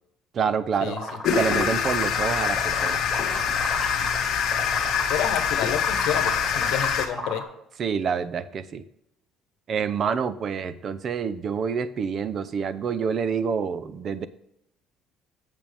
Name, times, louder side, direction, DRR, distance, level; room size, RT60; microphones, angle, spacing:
voice 1, 0.3-1.0 1.3-3.0 7.8-8.8 9.7-14.3, right 6 dB, 40° right, 14 dB, 0.6 m, -27 dB
sound 1, 0.9-4.2 4.5-7.4, left 1 dB, 5° right, 1.7 m, -34 dB
sound 2, 1.2-7.1, left 7 dB, 60° left, 1.5 m, -25 dB
voice 2, 5.1-7.4, left 10 dB, 80° left, 9 dB, 1.1 m, -29 dB
8.8 x 7.0 x 3.4 m, 0.79 s
cardioid pair, 155°, 0 cm